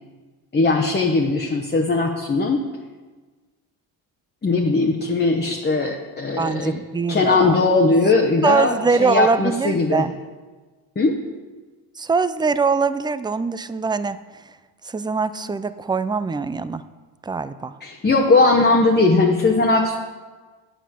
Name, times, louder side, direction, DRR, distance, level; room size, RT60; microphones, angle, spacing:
voice 1, 0.5-2.7 4.4-6.7 7.1-10.1 11.0-11.2 17.8-20.0, left 3 dB, 25° left, 2 dB, 1.0 m, -19 dB
voice 2, 6.4-7.6 8.4-10.1 12.0-14.2 14.8-16.8 17.2-17.8, right 4 dB, 10° right, 13 dB, 0.4 m, -22 dB
8.2 x 5.8 x 7.5 m, 1.3 s
supercardioid pair, 80°, 42 cm